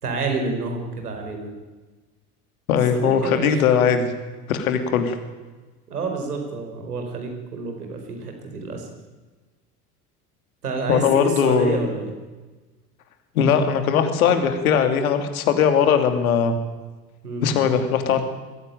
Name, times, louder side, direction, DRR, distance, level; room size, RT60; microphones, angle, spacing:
voice 1, 0.0-1.5 2.9-3.9 5.9-8.9 10.6-12.1 17.2-17.5, right 4 dB, 75° right, 3 dB, 4.8 m, -29 dB
voice 2, 2.7-4.1 4.5-5.2 10.9-11.8 13.3-16.5 17.4-18.2, left 7 dB, 65° left, 7 dB, 2.8 m, -19 dB
21.5 x 16.0 x 9.2 m, 1.3 s
figure-of-eight pair, 75°, 46 cm